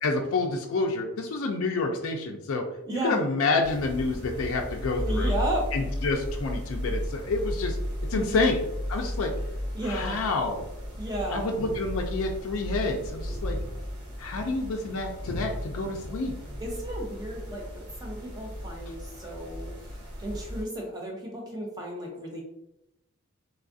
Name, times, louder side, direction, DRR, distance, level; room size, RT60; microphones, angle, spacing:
voice 1, 0.0-2.7 3.0-5.3 5.7-7.8 8.1-8.6 8.9-9.3 9.8-10.6 11.3-13.6 14.2-16.3, left 3 dB, 70° left, 2 dB, 0.4 m, -28 dB
voice 2, 2.8-3.2 5.0-5.7 8.1-8.5 9.7-10.2 11.0-11.5 16.6-22.4, right 1 dB, 15° right, -1 dB, 0.6 m, -33 dB
sound 1, 3.6-20.6, equal, 85° right, 1.1 m, -35 dB
3.3 x 2.3 x 2.5 m, 0.87 s
head